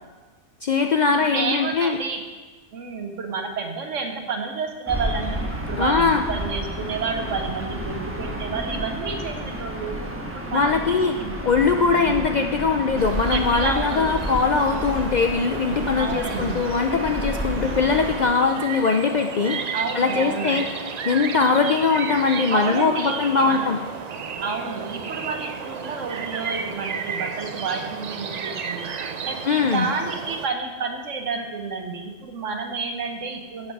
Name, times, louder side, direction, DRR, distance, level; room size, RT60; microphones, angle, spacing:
voice 1, 0.6-2.0 5.8-6.2 10.5-11.2 11.4-19.6 19.9-20.7 21.1-23.8 29.5-29.9, left 4 dB, 60° left, 5 dB, 0.4 m, -21 dB
voice 2, 1.1-2.2 2.7-5.4 5.7-9.9 10.2-11.4 11.9-12.2 13.3-14.2 16.0-16.6 19.7-20.6 22.5-23.7 24.4-28.9 29.2-33.7, right 4 dB, 85° right, 5 dB, 1.4 m, -30 dB
Gull seagull / Ocean, 4.9-18.3, equal, 10° right, 1.2 m, -31 dB
sound 1, 13.0-30.5, right 6 dB, 50° right, 0.5 m, -33 dB
10.5 x 7.4 x 4.7 m, 1.3 s
omnidirectional pair, 1.2 m